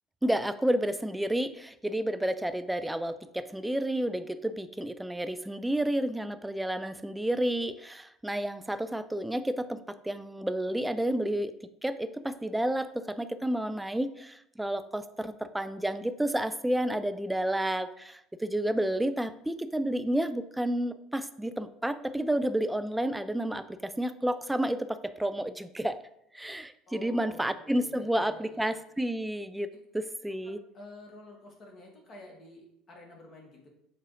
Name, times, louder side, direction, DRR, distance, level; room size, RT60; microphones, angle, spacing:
voice 1, 0.2-11.5 11.8-26.0 26.3-29.7 29.9-30.6, right 1 dB, 5° right, 11 dB, 0.3 m, -30 dB
voice 2, 26.9-28.7 29.7-29.8 30.3-33.7, left 1 dB, 40° left, 0 dB, 1.4 m, -50 dB
6.5 x 2.4 x 3.1 m, 0.76 s
hypercardioid pair, 65°, 0 cm